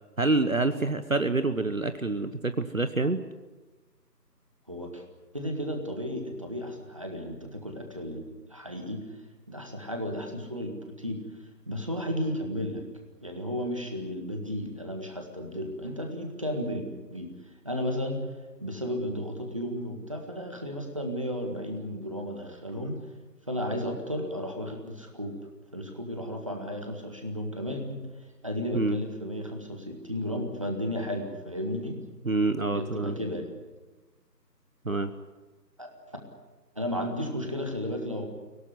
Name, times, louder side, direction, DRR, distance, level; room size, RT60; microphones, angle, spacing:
voice 1, 0.2-3.2 28.7-29.0 32.2-33.2 34.8-35.1, right 3 dB, 50° right, 10 dB, 1.2 m, -27 dB
voice 2, 4.7-5.0 5.3-8.2 8.5-9.0 9.5-11.2 11.7-12.8 13.2-16.9 17.1-17.3 17.6-18.2 18.6-23.0 23.5-25.3 25.7-28.0 28.4-32.0 32.7-33.5 35.8-35.9 36.8-38.2, equal, 20° right, 3 dB, 1.7 m, -33 dB
24.5 x 17.5 x 9.8 m, 1.2 s
figure-of-eight pair, 170°, 50 cm